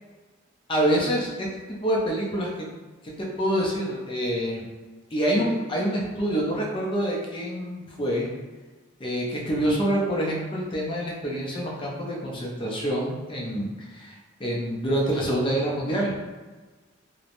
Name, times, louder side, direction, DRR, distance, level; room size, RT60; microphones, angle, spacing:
voice 1, 0.7-2.5 3.4-4.6 5.1-8.3 9.0-14.1 14.4-16.1, right 1 dB, 25° left, -3 dB, 0.4 m, -26 dB
3.0 x 2.0 x 2.5 m, 1.3 s
head